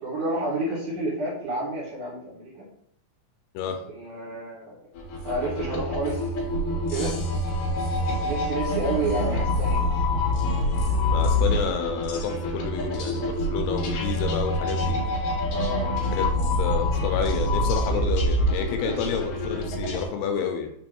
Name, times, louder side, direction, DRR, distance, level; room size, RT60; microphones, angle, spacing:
voice 1, 0.0-2.7 3.9-4.8 5.2-6.5 6.9-7.1 8.2-9.9 15.5-16.0 17.9-18.0 18.8-19.1, right 2 dB, 55° right, -6 dB, 2.6 m, -30 dB
sound 1, 5.0-20.0, left 1 dB, 65° left, 2.3 m, -26 dB
voice 2, 11.1-15.0 16.1-16.3 16.6-20.7, left 7 dB, 85° left, 5 dB, 2.6 m, -29 dB
6.9 x 3.1 x 4.5 m, 0.72 s
omnidirectional pair, 5.0 m